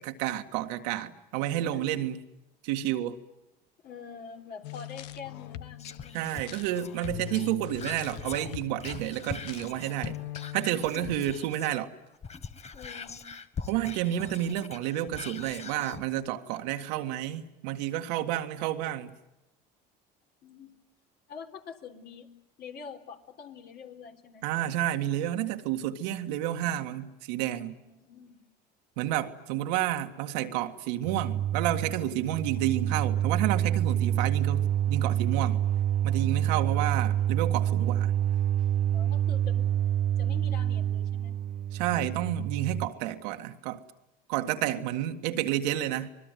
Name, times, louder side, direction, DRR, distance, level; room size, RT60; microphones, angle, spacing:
voice 1, 0.0-2.2 2.6-3.2 6.1-10.1 10.5-11.9 13.7-19.2 24.4-27.7 29.0-35.6 36.0-38.1 41.7-43.8 44.3-46.1, right 12 dB, 85° right, 1.9 m, -30 dB
voice 2, 3.8-6.3 11.0-11.1 12.7-13.3 20.4-20.7 21.3-22.3 22.6-24.5 27.9-28.4 38.9-39.8 40.2-41.3 44.5-44.6, left 6 dB, 55° left, 3.9 m, -45 dB
sound 1, 4.6-10.7, left 14 dB, 90° left, 1.1 m, -42 dB
Whispering, 5.8-11.8 12.1-16.1 16.5-16.6, left 6 dB, 30° left, 1.6 m, -42 dB
sound 2, 31.0-42.9, right 11 dB, 40° right, 0.8 m, -27 dB
26.0 x 21.0 x 9.3 m
supercardioid pair, 85°, 21 cm